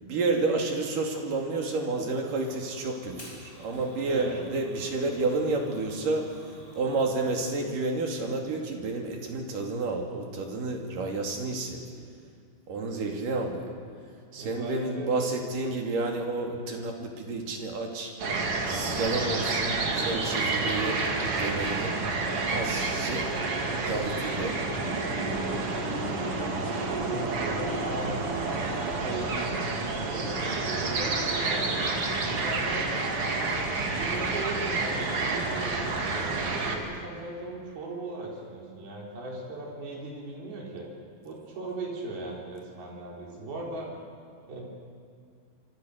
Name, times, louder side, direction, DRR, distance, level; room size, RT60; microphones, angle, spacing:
voice 1, 0.0-6.3 6.7-11.8 12.7-13.7 14.3-18.1 18.7-21.9 22.5-24.6, right 3 dB, 65° right, 2 dB, 4.3 m, -30 dB
Fire, 2.2-7.5, equal, 15° left, 7.7 m, -50 dB
voice 2, 4.0-4.4 12.8-12.9 14.3-15.4 16.5-16.6 26.4-30.3 30.7-31.8 32.2-33.3 33.9-40.9 41.2-43.9 44.5-44.6, right 2 dB, 90° right, -2 dB, 5.8 m, -38 dB
sound 1, 18.2-36.8, right 3 dB, 45° right, 2.9 m, -29 dB
25.5 x 25.5 x 6.7 m, 2.2 s
omnidirectional pair, 4.2 m